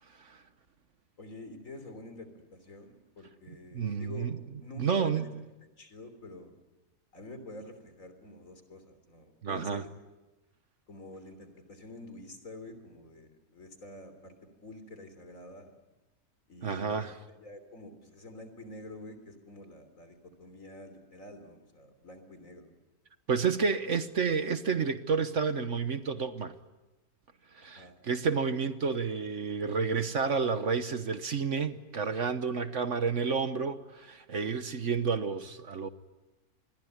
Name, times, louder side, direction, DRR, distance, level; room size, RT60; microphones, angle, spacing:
voice 1, 1.2-4.3 4.6-5.3 5.6-6.5 7.1-9.9 10.9-14.4 14.6-15.8 16.5-17.0 17.4-22.7 27.8-28.0, left 2 dB, 60° left, 3.9 m, -47 dB
voice 2, 3.5-4.3 4.8-5.3 9.4-9.8 16.6-17.1 23.3-26.5 27.5-35.9, right 5 dB, 55° right, 1.4 m, -30 dB
27.0 x 21.5 x 9.6 m
omnidirectional pair, 1.6 m